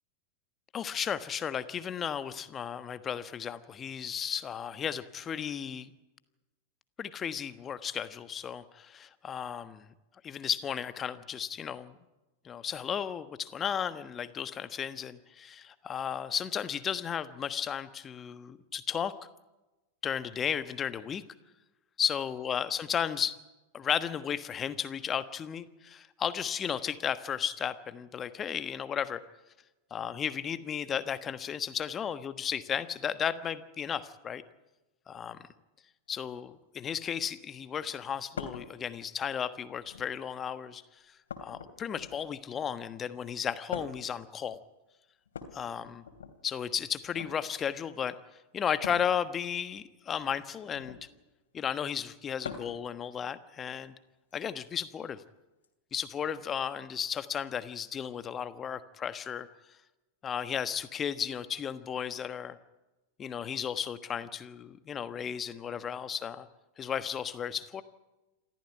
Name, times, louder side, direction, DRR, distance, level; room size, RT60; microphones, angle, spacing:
voice 1, 0.7-5.9 7.0-9.9 10.2-12.0 12.4-19.1 20.0-21.2 22.0-23.4 23.7-29.2 29.9-34.4 35.1-35.4 36.1-40.8 41.4-44.6 45.5-46.0 46.4-48.1 48.5-51.0 51.5-53.9 54.3-55.2 55.9-59.5 60.2-62.6 63.2-66.5 66.8-67.8, left 8 dB, 25° left, 12 dB, 1.3 m, -34 dB
sound 1, 38.4-38.7 39.8-40.3 41.3-42.4 43.7-44.1 45.3-46.3 47.0-47.4 48.8-49.1 50.7-51.1 52.4-52.8 54.3-54.4 55.6-55.7, left 6 dB, 65° left, 3.1 m, -42 dB
27.5 x 14.0 x 9.2 m, 1.1 s
figure-of-eight pair, 90°, 0 cm